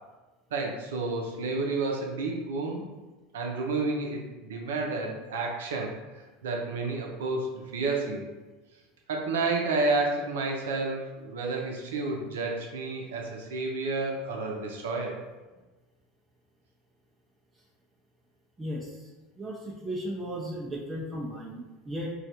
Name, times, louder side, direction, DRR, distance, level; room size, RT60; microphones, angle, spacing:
voice 1, 0.5-2.8 3.3-8.2 9.1-15.2, right 3 dB, 80° right, 1 dB, 0.6 m, -30 dB
voice 2, 18.6-18.9 19.4-22.1, equal, 15° right, -3 dB, 0.5 m, -35 dB
3.2 x 2.3 x 2.7 m, 1.2 s
hypercardioid pair, 90°, 0 cm